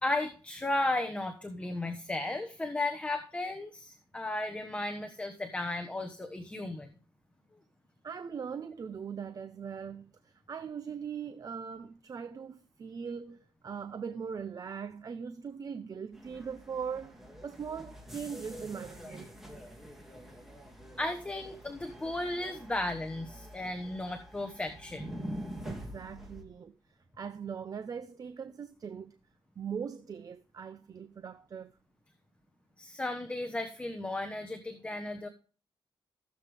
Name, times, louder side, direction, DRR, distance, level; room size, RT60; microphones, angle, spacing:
voice 1, 0.0-6.9 21.0-25.0 32.8-35.3, left 2 dB, 15° left, 1.2 m, -35 dB
voice 2, 8.0-19.3 25.6-29.2 29.6-31.8, right 6 dB, 40° right, 0.7 m, -40 dB
sound 1, 16.1-26.4, equal, 5° right, 3.0 m, -46 dB
16.0 x 8.0 x 3.5 m
wide cardioid pair, 170°, 9 cm